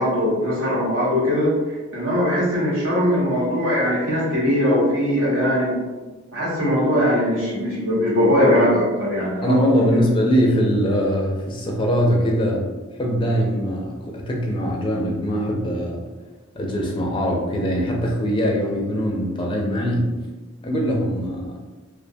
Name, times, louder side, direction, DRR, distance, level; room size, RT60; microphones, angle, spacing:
voice 1, 0.0-1.5 1.9-5.7 6.3-10.0, equal, 85° right, -7 dB, 1.1 m, -20 dB
voice 2, 9.4-12.7 13.0-16.0 16.6-20.1 20.6-21.5, equal, 25° left, -1 dB, 0.4 m, -22 dB
2.5 x 2.1 x 2.6 m, 1.3 s
head